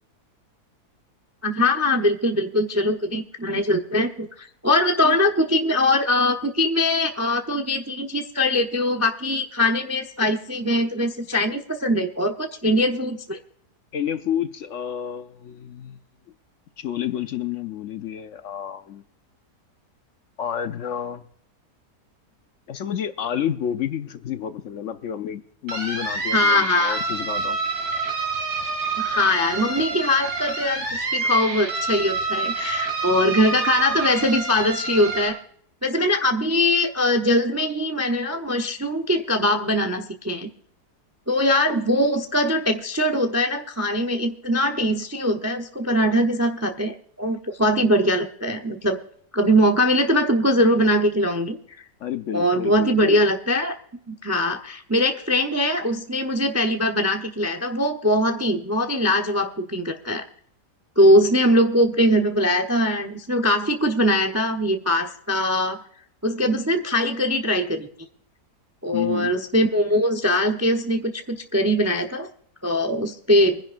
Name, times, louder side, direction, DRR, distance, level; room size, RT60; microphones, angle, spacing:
voice 1, 1.4-13.4 26.3-27.0 29.0-35.4 35.8-40.5 41.3-49.0 49.3-51.6 52.3-53.8 54.1-60.3 61.0-65.8 66.2-67.9 68.8-72.3 72.6-73.6, left 1 dB, 25° right, 0.3 m, -21 dB
voice 2, 13.9-16.0 16.8-19.0 20.4-21.3 22.7-27.6 52.0-53.2 68.9-69.3, left 9 dB, 60° left, 0.8 m, -30 dB
sound 1, 25.7-35.3, right 3 dB, 90° right, 3.1 m, -27 dB
24.0 x 10.5 x 2.5 m
omnidirectional pair, 1.7 m